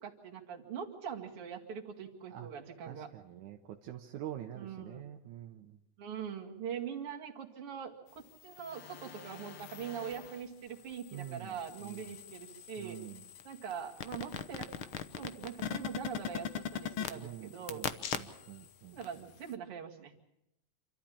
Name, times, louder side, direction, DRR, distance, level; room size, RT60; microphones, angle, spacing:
voice 1, 0.0-3.1 4.5-5.0 6.0-13.0 13.4-14.7 15.2-17.8 18.9-20.2, right 7 dB, 50° right, 0 dB, 3.0 m, -43 dB
voice 2, 2.9-5.8 11.1-11.6 11.8-12.1 12.8-13.2 17.1-19.0, right 12 dB, 80° right, 4 dB, 2.4 m, -46 dB
sound 1, 8.4-10.4 10.9-18.7 19.0-19.1, left 8 dB, 65° left, 1.3 m, -41 dB
27.5 x 13.5 x 8.7 m, 0.83 s
omnidirectional pair, 3.5 m